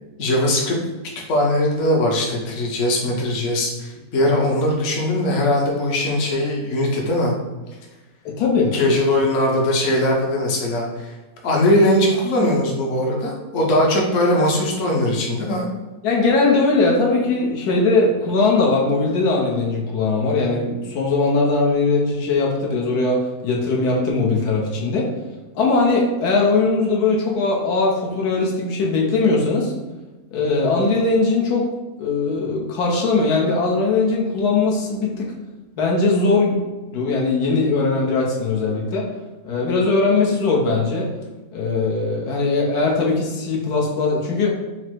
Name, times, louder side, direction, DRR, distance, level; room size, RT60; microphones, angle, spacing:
voice 1, 0.2-0.8 1.3-7.3 8.7-11.1 11.4-15.6, left 1 dB, 55° left, -2 dB, 1.1 m, -20 dB
voice 2, 8.2-8.7 16.0-25.1 25.5-29.7 30.3-31.7 32.0-35.3 35.8-36.6 36.9-39.1 39.4-41.1 41.5-44.5, left 3 dB, 75° left, -3 dB, 1.3 m, -20 dB
4.4 x 2.0 x 4.5 m, 1.2 s
omnidirectional pair, 1.7 m